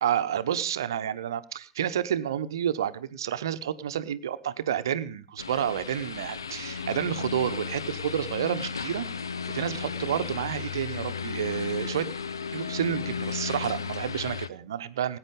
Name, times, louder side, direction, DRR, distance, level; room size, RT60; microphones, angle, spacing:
voice 1, 0.0-9.1 9.5-12.1 12.5-15.2, right 10 dB, 70° right, 12 dB, 0.9 m, -30 dB
sound 1, 5.4-14.5, left 6 dB, 85° left, 0.6 m, -34 dB
18.5 x 9.0 x 5.2 m, 0.37 s
figure-of-eight pair, 80°, 2 cm